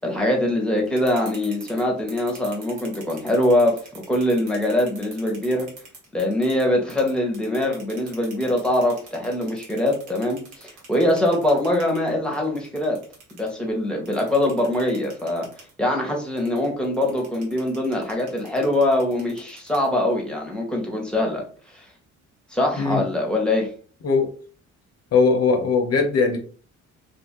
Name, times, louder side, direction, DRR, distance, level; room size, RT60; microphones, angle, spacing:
voice 1, 0.0-3.8 4.1-5.7 6.1-13.0 13.3-15.5 15.8-21.4 21.7-21.9 22.5-23.7, left 1 dB, 5° left, -1 dB, 1.0 m, -23 dB
sound 1, 0.8-6.6 6.9-13.5 14.1-15.7 16.4-20.1, right 4 dB, 80° right, 1.3 m, -44 dB
voice 2, 25.1-26.4, left 4 dB, 55° left, 4 dB, 0.8 m, -19 dB
2.7 x 2.5 x 2.9 m, 0.41 s
cardioid pair, 90°, 30 cm